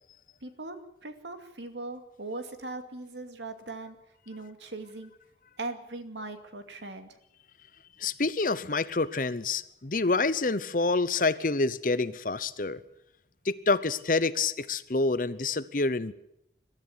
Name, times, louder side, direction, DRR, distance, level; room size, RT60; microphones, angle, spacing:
voice 1, 0.4-4.0 4.3-5.1 5.6-7.2, right 2 dB, 80° right, 7 dB, 2.5 m, -40 dB
voice 2, 8.0-12.8 13.4-16.1, left 3 dB, 50° left, 15 dB, 0.9 m, -27 dB
22.5 x 13.0 x 9.9 m, 0.81 s
head